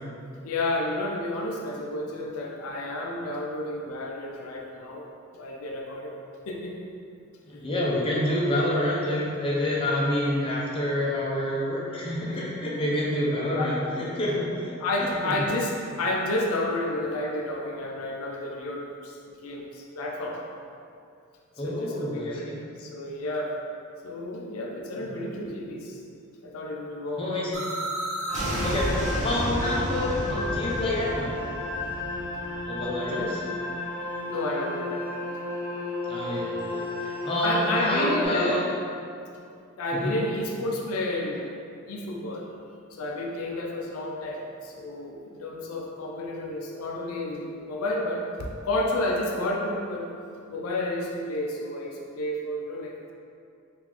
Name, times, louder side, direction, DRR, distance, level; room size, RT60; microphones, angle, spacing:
voice 1, 0.4-5.0 5.3-6.1 6.5-6.9 7.5-7.6 13.5-14.0 14.8-20.4 21.6-22.5 22.8-23.5 24.0-26.0 26.4-27.3 33.0-33.4 34.3-35.1 37.4-38.6 39.8-41.5 41.9-42.5 42.9-50.1 50.5-53.1, left 1 dB, 80° left, -1 dB, 0.4 m, -31 dB
voice 2, 7.5-14.8 15.2-15.3 21.6-22.6 25.0-25.3 27.2-27.6 28.6-28.9 29.2-31.4 32.6-33.4 36.1-38.6 40.0-40.1, left 1 dB, 25° left, -5 dB, 0.5 m, -28 dB
sound 1, 27.5-33.3, right 1 dB, 35° right, 0.5 m, -31 dB
sound 2, 28.3-38.3, left 2 dB, 50° right, 1.1 m, -33 dB
3.8 x 2.5 x 2.9 m, 2.5 s
head